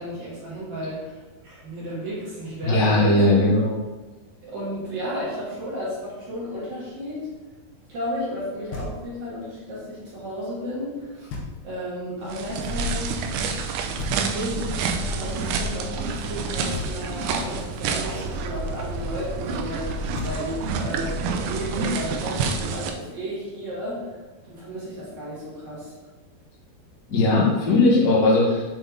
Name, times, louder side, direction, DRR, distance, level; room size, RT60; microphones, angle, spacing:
voice 1, 0.0-3.2 4.4-7.2 7.9-11.3 11.6-13.3 14.1-24.1 24.4-25.9, equal, 50° right, -8 dB, 2.9 m, -33 dB
voice 2, 2.6-3.8 27.1-28.6, left 2 dB, 65° left, -6 dB, 0.9 m, -18 dB
Knock, 8.7-9.4 11.3-12.0 14.0-14.8 16.7-17.5 19.8-19.9 20.1-21.0, left 2 dB, 85° left, 3.1 m, -36 dB
sound 1, 12.3-22.9, right 4 dB, 90° right, 2.7 m, -28 dB
7.4 x 4.1 x 3.7 m, 1.2 s
omnidirectional pair, 4.6 m